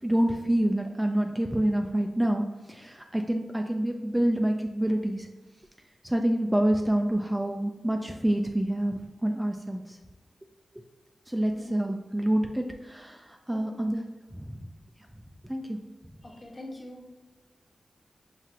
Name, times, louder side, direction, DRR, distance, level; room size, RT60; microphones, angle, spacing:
voice 1, 0.0-5.3 6.0-10.0 11.3-14.6 15.4-15.8, right 1 dB, 10° right, 3 dB, 0.3 m, -27 dB
voice 2, 11.5-12.0 13.5-13.8 16.2-17.2, left 1 dB, 35° left, -1 dB, 1.0 m, -44 dB
5.7 x 2.4 x 2.8 m, 1.2 s
cardioid pair, 60°, 0 cm